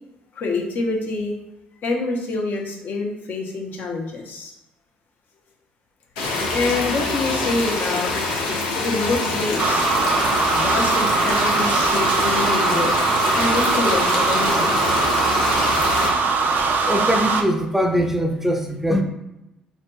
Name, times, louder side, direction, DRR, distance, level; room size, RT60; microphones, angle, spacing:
voice 1, 0.3-1.3 1.8-4.5 6.5-8.1 8.8-9.9 10.5-13.0 13.4-14.8, left 3 dB, 50° left, -1 dB, 0.8 m, -26 dB
sound 1, 6.2-16.1, left 3 dB, 80° left, 0.7 m, -25 dB
sound 2, 9.6-17.4, right 4 dB, 50° right, 0.4 m, -21 dB
voice 2, 16.9-19.0, equal, 5° right, 4 dB, 0.6 m, -22 dB
4.2 x 2.7 x 2.2 m, 0.91 s
hypercardioid pair, 55°, 4 cm